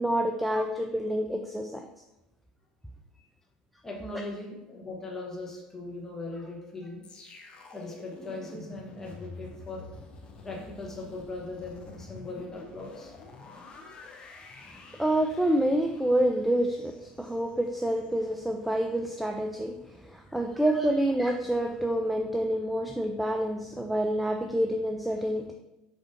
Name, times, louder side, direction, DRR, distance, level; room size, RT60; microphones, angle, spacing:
voice 1, 0.0-1.9 15.0-25.5, right 1 dB, ahead, 3 dB, 0.4 m, -27 dB
voice 2, 3.8-7.0 7.7-9.9 10.4-13.1 20.3-20.6, left 2 dB, 15° left, -2 dB, 1.3 m, -39 dB
sound 1, 7.0-18.1 18.5-18.7, left 3 dB, 40° left, 0.7 m, -48 dB
5.0 x 3.5 x 2.7 m, 0.95 s
hypercardioid pair, 85°, 3 cm